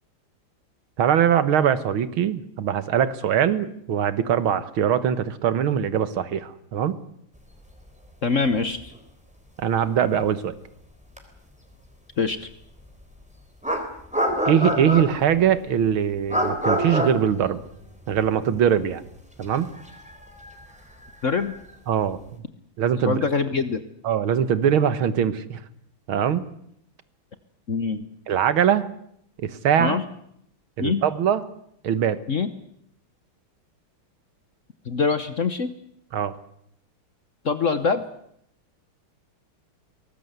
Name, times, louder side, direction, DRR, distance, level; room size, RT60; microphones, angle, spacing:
voice 1, 1.0-7.0 9.6-10.5 14.5-17.6 18.1-19.0 19.4-19.7 21.9-22.2 22.8-23.2 24.0-25.6 26.1-26.4 28.3-28.9 29.4-30.0 30.8-31.4 31.8-32.2 36.1-36.3, right 9 dB, 75° right, 14 dB, 2.1 m, -22 dB
voice 2, 8.2-8.9 12.2-12.5 21.2-21.5 23.0-23.8 27.7-28.1 29.8-30.0 30.8-31.0 32.3-32.5 34.8-35.7 37.4-38.0, left 5 dB, 45° left, 12 dB, 1.1 m, -24 dB
sound 1, 8.5-8.6 8.8-9.0 11.2-11.3 13.0-13.1 13.6-15.4 16.3-18.3 18.5-18.7 19.4-21.7, equal, 5° right, 3.6 m, -27 dB
23.5 x 19.5 x 8.1 m, 0.73 s
omnidirectional pair, 2.3 m